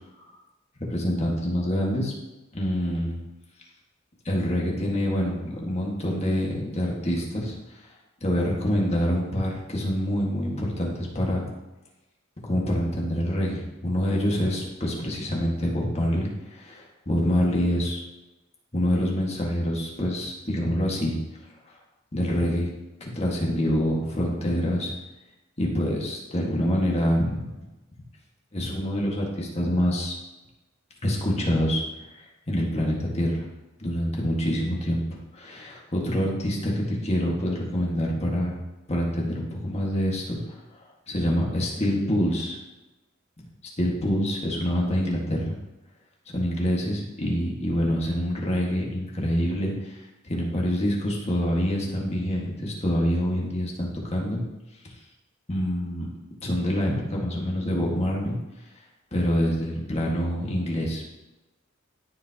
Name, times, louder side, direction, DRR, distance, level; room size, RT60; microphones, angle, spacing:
voice 1, 0.8-2.1 2.5-3.2 4.2-7.8 8.2-11.5 12.4-18.0 18.7-21.2 22.1-22.7 23.0-24.9 25.6-27.5 28.5-30.1 31.0-32.1 32.5-33.5 33.8-35.0 35.3-38.6 38.9-40.4 41.1-42.6 43.8-45.5 46.3-54.4 55.5-56.1 56.4-58.4 59.1-61.0, equal, 30° left, -2 dB, 1.7 m, -26 dB
13.5 x 5.2 x 2.9 m, 1.0 s
head